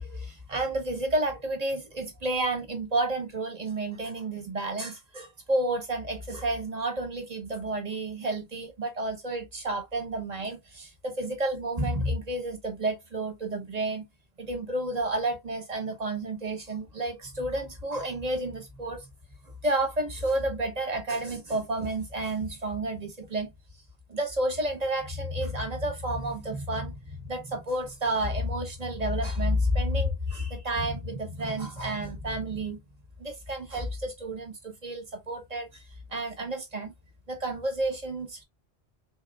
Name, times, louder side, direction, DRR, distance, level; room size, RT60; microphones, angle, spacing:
voice 1, 0.0-14.1 14.4-19.1 19.6-23.5 24.1-32.8 33.2-35.8 36.1-36.9 37.3-38.4, right 1 dB, 40° right, 1.3 m, -30 dB
4.3 x 3.5 x 2.4 m
omnidirectional pair, 1.1 m